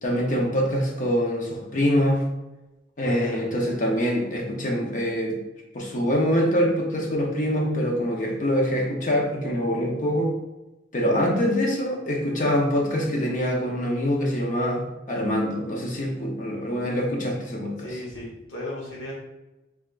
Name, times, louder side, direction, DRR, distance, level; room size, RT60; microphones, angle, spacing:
voice 1, 0.0-2.2 3.0-5.3 5.7-10.3 10.9-17.9, equal, 45° left, -1 dB, 0.8 m, -24 dB
voice 2, 3.0-3.5 16.1-16.2 17.8-19.1, left 1 dB, 75° left, -4 dB, 1.2 m, -35 dB
3.4 x 3.3 x 2.5 m, 1.0 s
head